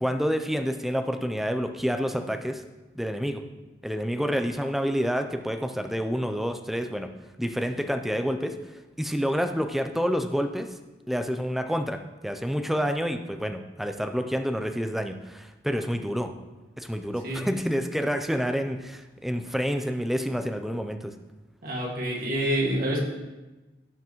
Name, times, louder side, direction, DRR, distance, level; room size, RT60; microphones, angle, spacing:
voice 1, 0.0-2.6 3.0-3.4 3.8-7.1 7.4-8.5 9.0-10.7 11.1-16.3 16.8-21.1, equal, ahead, 6 dB, 0.5 m, -28 dB
voice 2, 21.6-23.0, right 1 dB, 55° right, -1 dB, 2.0 m, -27 dB
16.0 x 5.8 x 3.1 m, 1.1 s
head